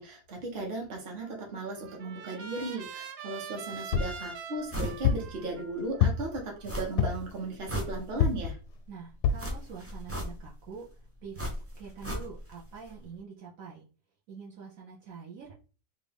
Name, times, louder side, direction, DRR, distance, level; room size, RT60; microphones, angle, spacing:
voice 1, 0.0-8.6, right 2 dB, 40° right, 0 dB, 1.1 m, -36 dB
Trumpet, 1.2-7.4, right 5 dB, 90° right, 0.5 m, -45 dB
sound 1, 3.9-4.2 5.0-5.3 6.0-6.4 7.0-7.3 8.2-8.5 9.2-9.5 10.1-10.2 10.5-10.6, left 7 dB, 90° left, 1.1 m, -26 dB
sound 2, 4.7-5.0 5.4-5.5 6.6-7.2 7.5-8.4 9.4-10.6 11.3-12.6 12.9-13.0, equal, 20° right, 0.4 m, -36 dB
voice 2, 8.9-11.4 11.7-13.8 14.3-15.5, right 6 dB, 65° right, -3 dB, 1.1 m, -45 dB
3.4 x 2.5 x 3.4 m, 0.35 s
omnidirectional pair, 1.7 m